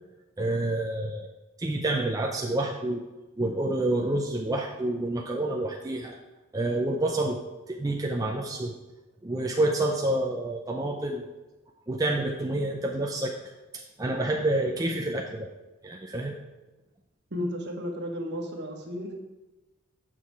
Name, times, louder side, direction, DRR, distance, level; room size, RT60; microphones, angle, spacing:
voice 1, 0.4-1.3 1.6-3.0 3.4-6.2 6.5-7.4 7.7-8.7 9.2-11.2 11.9-13.4 13.7-15.5 15.8-16.4, right 1 dB, 15° right, 0 dB, 0.5 m, -28 dB
voice 2, 17.3-19.1, equal, 50° right, 1 dB, 1.3 m, -33 dB
7.5 x 6.5 x 4.7 m, 1.1 s
head